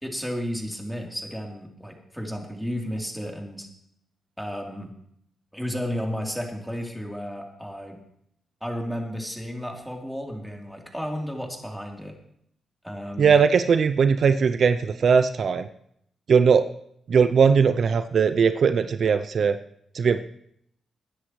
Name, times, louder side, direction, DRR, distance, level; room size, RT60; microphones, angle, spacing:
voice 1, 0.0-3.7 4.4-4.9 5.5-8.0 8.6-12.2 12.8-13.3, equal, ahead, 0 dB, 3.5 m, -33 dB
voice 2, 13.2-15.7 16.3-16.7 17.1-19.6 19.9-20.2, right 6 dB, 65° right, 11 dB, 0.5 m, -19 dB
20.5 x 10.0 x 3.2 m, 0.71 s
supercardioid pair, 55°, 0 cm